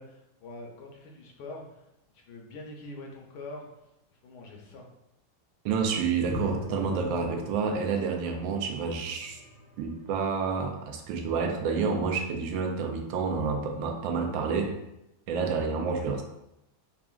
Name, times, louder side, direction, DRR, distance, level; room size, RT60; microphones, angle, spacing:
voice 1, 0.0-1.9 2.1-3.8 4.2-4.9, left 2 dB, 70° left, 1 dB, 1.1 m, -44 dB
voice 2, 5.6-9.4 9.8-14.8 15.3-16.2, right 5 dB, 90° right, 3 dB, 1.3 m, -29 dB
sound 1, 6.3-10.9, left 2 dB, 35° right, 0.9 m, -42 dB
5.7 x 2.4 x 2.3 m, 0.88 s
omnidirectional pair, 2.0 m